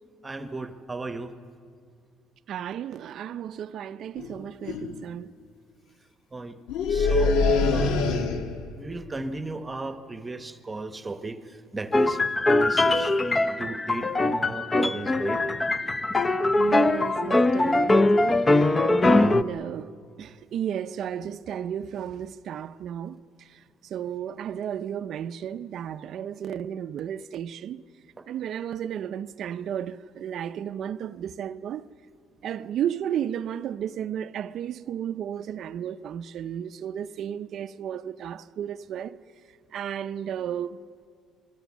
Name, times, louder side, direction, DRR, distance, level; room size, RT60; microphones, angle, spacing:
voice 1, 0.2-1.3 6.3-6.6 6.9-8.2 8.7-12.2 12.5-15.4 28.2-28.3, right 3 dB, 15° right, 1.0 m, -35 dB
voice 2, 2.5-5.3 16.6-19.9 20.2-27.8 28.3-31.9 32.4-39.2 39.7-40.8, right 9 dB, 50° right, 0.5 m, -33 dB
sound 1, 4.2-4.3 4.6-5.0 6.7-8.7, left 4 dB, 80° left, 1.7 m, -24 dB
sound 2, 11.9-19.4, left 2 dB, 15° left, 0.6 m, -22 dB
26.0 x 22.5 x 7.3 m
cardioid pair, 145°, 0 cm